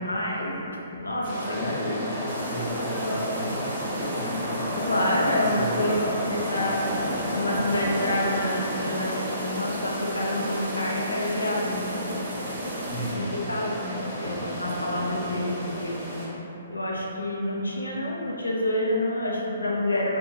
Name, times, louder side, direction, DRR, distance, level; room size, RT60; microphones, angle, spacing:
voice 1, 0.0-1.4 4.8-6.8 7.3-12.1 12.5-12.6 13.0-13.2 13.5-16.3 16.7-20.2, left 1 dB, 90° left, -3 dB, 0.4 m, -28 dB
sound 1, 1.2-16.3, equal, 20° right, 1.1 m, -32 dB
voice 2, 1.4-4.6 5.0-7.3 12.9-13.4, equal, 15° left, -8 dB, 0.5 m, -33 dB
sound 2, 2.3-13.1, right 2 dB, 70° right, 0.4 m, -40 dB
2.7 x 2.1 x 2.7 m, 3.0 s
figure-of-eight pair, 130°, 0 cm